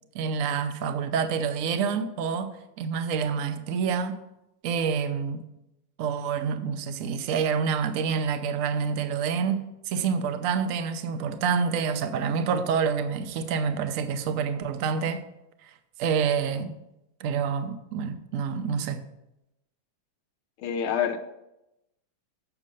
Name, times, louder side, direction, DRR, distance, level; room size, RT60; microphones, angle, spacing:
voice 1, 0.1-4.2 4.6-5.4 6.0-15.2 16.0-16.8 17.2-19.1, right 6 dB, 65° right, 0.8 m, -27 dB
voice 2, 20.6-21.2, left 8 dB, 85° left, 1.6 m, -26 dB
8.7 x 6.3 x 5.3 m
omnidirectional pair, 2.2 m